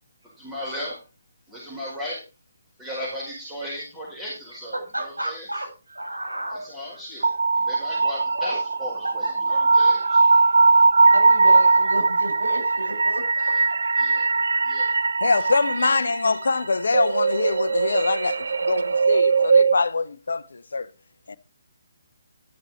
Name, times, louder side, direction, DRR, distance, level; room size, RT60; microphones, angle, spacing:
voice 1, 0.2-1.0 1.5-2.2 2.8-5.5 6.5-10.2 11.4-11.5 13.5-13.6 14.0-14.3 14.6-15.0 15.8-16.0, equal, 5° right, 4.8 m, -36 dB
voice 2, 4.9-5.7 5.9-6.7 8.3-8.5 9.2-9.8 11.0-13.5, right 1 dB, 85° right, 5.4 m, -32 dB
sound 1, 7.2-19.7, right 3 dB, 65° right, 0.4 m, -20 dB
voice 3, 15.2-20.9 21.3-21.4, left 4 dB, 65° left, 0.7 m, -24 dB
12.0 x 6.7 x 4.3 m
figure-of-eight pair, 140°, 0 cm